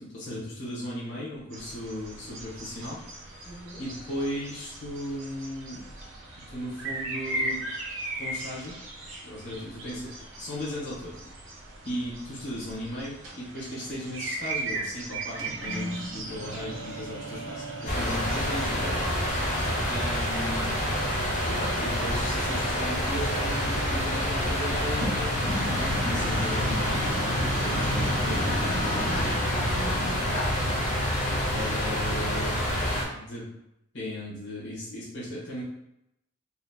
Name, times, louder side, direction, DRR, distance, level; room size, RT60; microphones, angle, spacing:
voice 1, 0.0-3.0 3.3-3.5 3.8-5.8 6.5-7.6 8.2-8.8 9.2-10.1 10.4-11.2 11.8-19.1 19.4-20.8 21.5-28.6 31.5-32.6 33.1-33.5 33.9-35.6, left 1 dB, 65° left, -8 dB, 1.4 m, -36 dB
sound 1, 1.5-19.7, right 2 dB, 80° right, 1.0 m, -38 dB
voice 2, 3.4-3.8 27.6-28.4 28.9-30.9, left 1 dB, 85° left, -8 dB, 1.4 m, -39 dB
sound 2, 15.4-30.4, right 1 dB, 60° right, 0.8 m, -35 dB
sound 3, 17.9-33.0, equal, 40° left, 0.8 m, -27 dB
4.2 x 2.8 x 2.3 m, 0.84 s
head